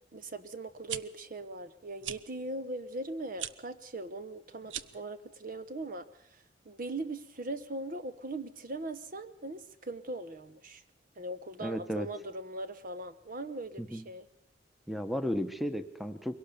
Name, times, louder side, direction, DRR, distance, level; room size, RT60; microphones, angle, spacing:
voice 1, 0.1-10.8 11.2-14.3, right 2 dB, 50° right, 11 dB, 1.2 m, -40 dB
sound 1, 0.7-1.0 2.0-2.2 3.3-3.5 4.6-5.0, right 10 dB, 90° right, 0.8 m, -38 dB
voice 2, 11.6-12.1 13.8-14.0 14.9-16.4, equal, ahead, 9 dB, 1.1 m, -34 dB
23.0 x 17.5 x 6.8 m, 0.63 s
head